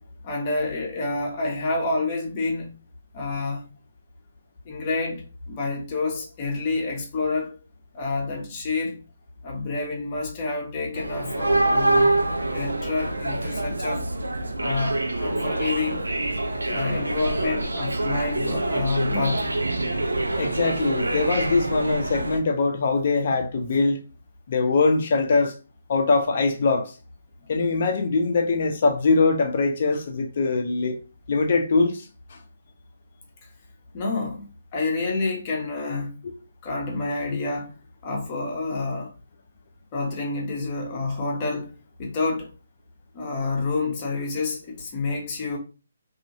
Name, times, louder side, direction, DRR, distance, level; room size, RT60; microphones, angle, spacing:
voice 1, 0.2-2.7 3.1-3.7 4.6-7.6 7.9-9.0 9.4-12.1 12.5-14.0 14.6-16.0 16.7-19.5 33.9-36.1 36.6-37.7 38.0-39.1 39.9-41.7 42.0-42.5 43.1-45.6, left 3 dB, 30° left, 1.0 m, -28 dB
sound 1, 10.9-22.4, right 2 dB, 80° right, 0.4 m, -26 dB
voice 2, 20.4-24.0 24.5-25.5 25.9-26.9 27.5-31.0 31.3-32.0 36.2-36.3, left 3 dB, 50° left, 0.6 m, -22 dB
2.8 x 2.7 x 2.7 m
figure-of-eight pair, 140°, 0 cm